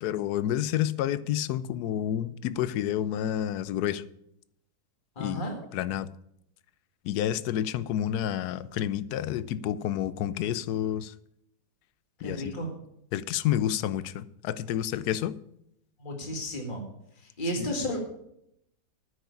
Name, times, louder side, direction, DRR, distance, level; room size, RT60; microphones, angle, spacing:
voice 1, 0.0-4.0 5.2-5.4 5.7-6.1 7.0-11.1 12.2-12.5 13.1-15.3 17.6-17.7, left 11 dB, 80° left, 17 dB, 1.1 m, -29 dB
voice 2, 5.2-5.6 12.2-12.7 16.0-16.8 17.2-18.0, equal, 30° left, 1 dB, 2.1 m, -33 dB
9.6 x 6.4 x 8.5 m, 0.77 s
omnidirectional pair, 1.7 m